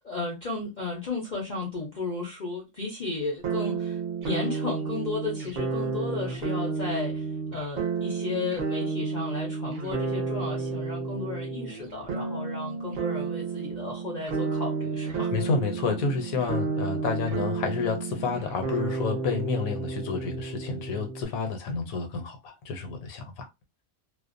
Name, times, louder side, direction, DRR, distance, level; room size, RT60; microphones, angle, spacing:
voice 1, 0.0-4.0 4.2-7.3 7.5-15.3, left 3 dB, 45° left, 0.6 m, -34 dB
sound 1, 3.4-21.3, right 4 dB, 55° right, 0.7 m, -31 dB
voice 2, 15.3-23.5, left 5 dB, 75° left, 1.1 m, -30 dB
2.5 x 2.1 x 2.5 m
omnidirectional pair, 1.5 m